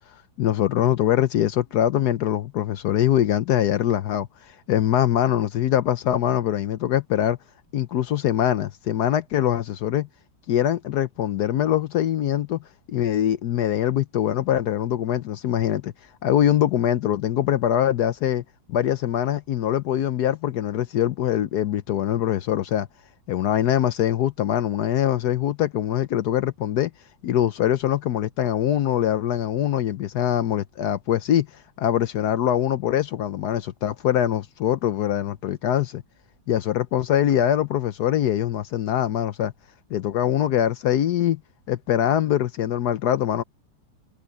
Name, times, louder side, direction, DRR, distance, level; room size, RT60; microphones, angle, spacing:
voice 1, 0.4-7.4 7.7-10.1 10.5-12.6 12.9-15.9 16.2-18.4 18.7-22.9 23.3-26.9 27.2-31.5 31.8-36.0 36.5-39.5 39.9-41.4 41.7-43.4, left 11 dB, 70° left, 1.2 m, -23 dB
omnidirectional pair, 1.9 m